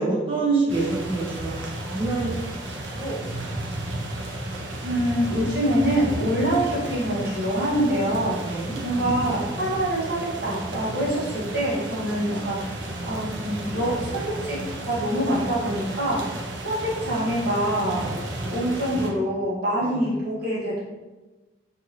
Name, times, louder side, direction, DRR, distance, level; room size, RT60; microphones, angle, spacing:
voice 1, 0.0-2.7 2.9-3.5 8.4-8.8 19.8-20.1, right 3 dB, 30° right, -9 dB, 0.6 m, -27 dB
sound 1, 0.7-19.1, right 1 dB, 75° right, 0.5 m, -33 dB
voice 2, 4.8-8.4 8.8-12.7 13.0-14.6 14.9-16.2 16.6-18.1 18.5-20.8, right 1 dB, 55° right, -7 dB, 1.1 m, -25 dB
2.6 x 2.6 x 2.9 m, 1.2 s
head